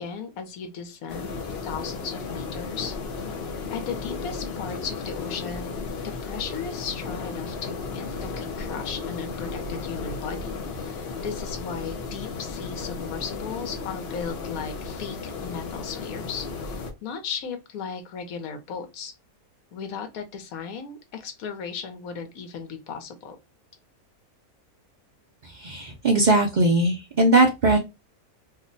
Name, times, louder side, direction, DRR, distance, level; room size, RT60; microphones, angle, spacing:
voice 1, 0.0-2.9 3.7-5.8 6.0-19.1 19.7-23.4, left 6 dB, 70° left, 1.2 m, -36 dB
sound 1, 1.1-16.9, left 4 dB, 55° left, 0.7 m, -34 dB
voice 2, 25.4-27.8, right 2 dB, 80° right, 0.4 m, -20 dB
2.8 x 2.1 x 3.8 m
omnidirectional pair, 1.6 m